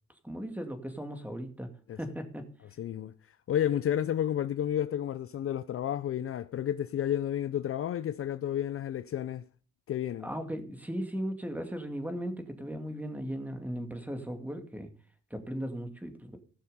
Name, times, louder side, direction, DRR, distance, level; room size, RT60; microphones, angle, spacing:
voice 1, 0.2-2.5 10.2-14.9 15.3-16.4, equal, 5° right, 2.3 m, -37 dB
voice 2, 2.8-3.1 3.5-9.4 9.9-10.3, left 10 dB, 50° left, 0.5 m, -31 dB
16.0 x 6.4 x 5.5 m
cardioid pair, 90°, 30 cm